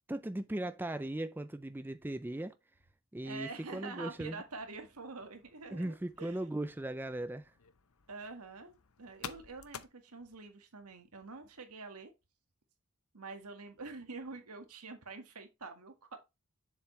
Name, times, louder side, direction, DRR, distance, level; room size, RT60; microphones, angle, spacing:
voice 1, 0.0-2.5 3.1-4.4 5.7-7.5, right 1 dB, 10° right, 0.4 m, -38 dB
voice 2, 3.2-6.4 8.1-12.1 13.1-16.2, right 3 dB, 85° right, 1.8 m, -46 dB
sound 1, 3.5-9.9, left 7 dB, 70° left, 0.8 m, -53 dB
7.1 x 7.1 x 3.2 m
head